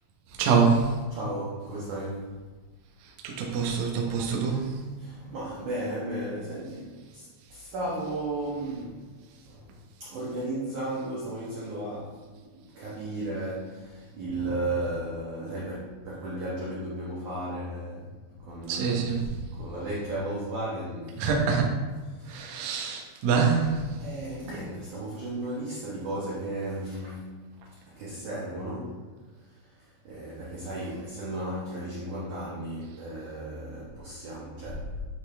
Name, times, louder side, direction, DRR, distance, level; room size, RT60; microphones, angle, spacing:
voice 1, 0.4-0.9 3.2-4.8 18.7-19.3 21.2-21.6 22.3-23.8, right 5 dB, 90° right, -1 dB, 1.7 m, -25 dB
voice 2, 1.1-2.3 5.0-7.3 7.5-9.0 9.5-9.6 10.0-12.2 12.6-18.2 18.4-19.2 19.6-21.2 22.2-22.4 24.0-27.3 27.9-29.0 30.0-34.9, right 1 dB, 70° right, -7 dB, 1.8 m, -34 dB
11.0 x 3.8 x 3.4 m, 1.3 s
omnidirectional pair, 5.3 m